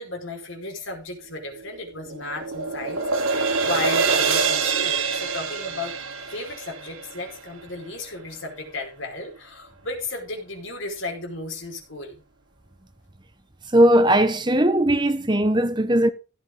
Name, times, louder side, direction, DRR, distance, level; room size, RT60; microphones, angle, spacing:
voice 1, 0.0-5.9 6.3-12.2, left 2 dB, 70° left, 5.1 m, -34 dB
sound 1, 1.5-7.9, right 5 dB, 85° right, 2.7 m, -25 dB
voice 2, 13.7-16.1, right 1 dB, 20° right, 1.1 m, -18 dB
16.5 x 8.3 x 3.9 m
head